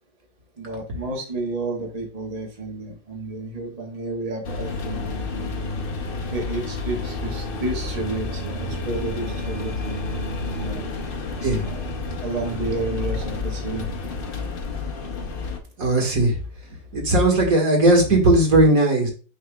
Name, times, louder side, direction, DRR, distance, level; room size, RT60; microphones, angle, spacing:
voice 1, 0.6-5.1 6.3-9.9 10.5-10.8 11.6-11.8 12.2-13.9, right 2 dB, 25° right, 0 dB, 1.0 m, -31 dB
sound 1, 4.4-15.6, left 3 dB, 55° left, 0.6 m, -30 dB
voice 2, 15.8-16.4 16.9-19.1, right 1 dB, 50° right, 1 dB, 2.0 m, -17 dB
10.0 x 4.1 x 2.3 m, 0.37 s
omnidirectional pair, 2.1 m